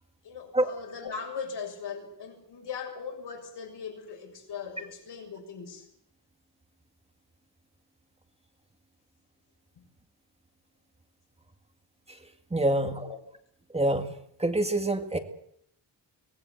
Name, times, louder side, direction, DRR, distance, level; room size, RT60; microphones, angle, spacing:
voice 1, 0.2-5.9 9.8-9.9 12.8-13.2, left 6 dB, 80° left, 2 dB, 7.0 m, -39 dB
voice 2, 12.5-13.1 13.7-14.1 14.4-15.2, right 1 dB, 15° right, 6 dB, 2.0 m, -26 dB
23.5 x 19.5 x 8.0 m, 0.68 s
wide cardioid pair, 135°, 41 cm